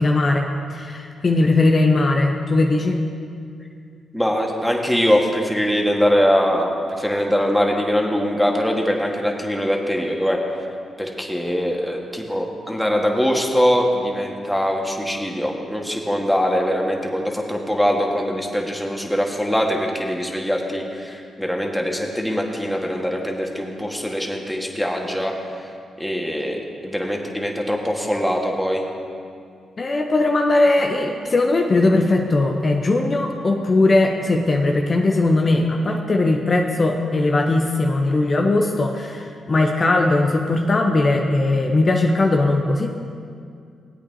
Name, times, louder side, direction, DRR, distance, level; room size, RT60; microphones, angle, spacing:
voice 1, 0.0-3.0 29.8-42.9, left 2 dB, 45° left, 2 dB, 0.8 m, -19 dB
voice 2, 4.1-10.4 11.0-25.3 26.0-28.8, equal, 5° left, 0 dB, 1.6 m, -22 dB
17.0 x 8.4 x 2.8 m, 2.3 s
hypercardioid pair, 45°, 0 cm